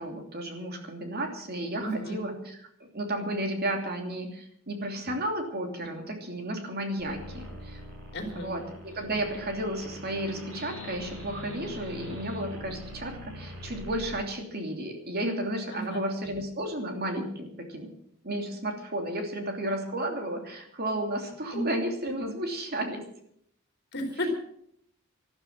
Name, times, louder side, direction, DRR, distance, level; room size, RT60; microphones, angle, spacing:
voice 1, 0.0-7.8 8.3-17.9 18.2-23.0, right 1 dB, 45° right, 4 dB, 3.0 m, -33 dB
voice 2, 1.8-2.2 8.1-8.5 15.7-16.1 21.5-21.6 23.9-24.3, equal, 50° left, 4 dB, 3.4 m, -32 dB
sound 1, 7.0-14.2, equal, 70° right, 7.6 m, -43 dB
13.0 x 13.0 x 7.4 m, 0.69 s
head